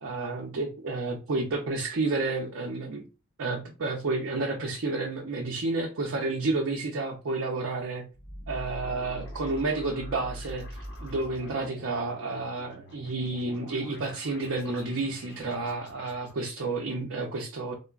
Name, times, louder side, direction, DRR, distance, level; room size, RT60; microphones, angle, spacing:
voice 1, 0.0-3.0 3.4-8.1 8.5-10.7 11.0-17.7, right 3 dB, 60° right, 0.6 m, -30 dB
sound 1, 8.2-16.3, equal, 55° left, 1.3 m, -44 dB
3.7 x 2.1 x 2.3 m
head